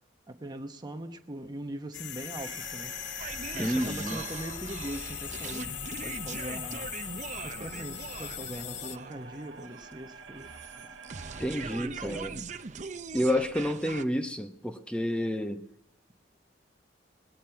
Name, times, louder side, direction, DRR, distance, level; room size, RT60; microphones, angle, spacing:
voice 1, 0.3-3.0 3.5-6.9 7.4-10.5 11.4-12.5, right 1 dB, 25° right, 1.0 m, -41 dB
sound 1, 1.9-9.0, left 12 dB, 75° left, 0.6 m, -40 dB
sound 2, 2.3-11.8, right 3 dB, 85° right, 1.6 m, -47 dB
sound 3, 3.2-14.0, right 5 dB, 40° right, 0.6 m, -41 dB
voice 2, 3.6-4.2 11.4-12.3 13.1-15.6, equal, 5° left, 1.0 m, -29 dB
21.0 x 9.2 x 5.8 m
head